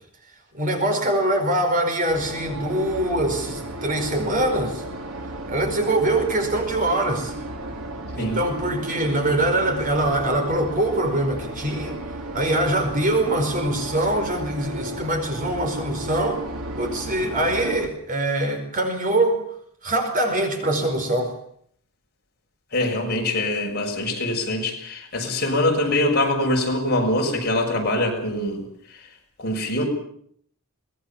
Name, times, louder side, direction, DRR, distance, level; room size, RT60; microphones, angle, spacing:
voice 1, 0.5-4.8 5.5-7.3 8.1-12.0 12.3-16.4 16.8-19.4 19.8-21.3, right 1 dB, 40° right, 5 dB, 5.0 m, -23 dB
sound 1, 2.1-17.9, right 1 dB, 80° right, 3.1 m, -34 dB
voice 2, 22.7-28.6 29.4-29.8, left 1 dB, 45° left, 1 dB, 6.7 m, -23 dB
24.0 x 20.0 x 7.4 m, 0.64 s
head